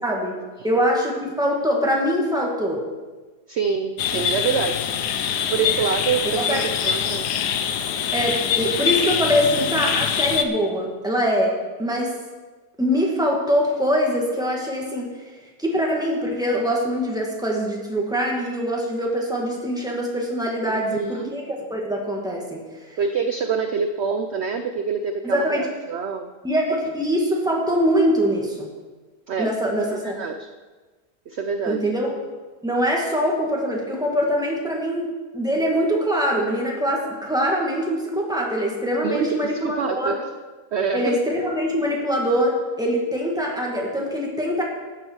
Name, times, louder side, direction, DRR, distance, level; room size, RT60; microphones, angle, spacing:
voice 1, 0.0-2.9 6.4-6.6 8.1-12.2 12.8-15.2 15.6-23.0 25.2-25.7 26.4-28.7 29.4-30.2 31.7-32.2 32.6-40.2 40.9-44.6, equal, ahead, -1 dB, 2.0 m, -23 dB
voice 2, 3.5-4.8 5.5-7.3 20.7-21.3 23.0-26.3 29.3-29.6 29.9-30.5 31.3-31.9 39.0-40.3 40.7-41.2, right 5 dB, 60° right, 7 dB, 0.7 m, -26 dB
sound 1, 4.0-10.4, left 8 dB, 75° left, 1.3 m, -24 dB
13.5 x 9.7 x 4.7 m, 1.3 s
omnidirectional pair, 1.8 m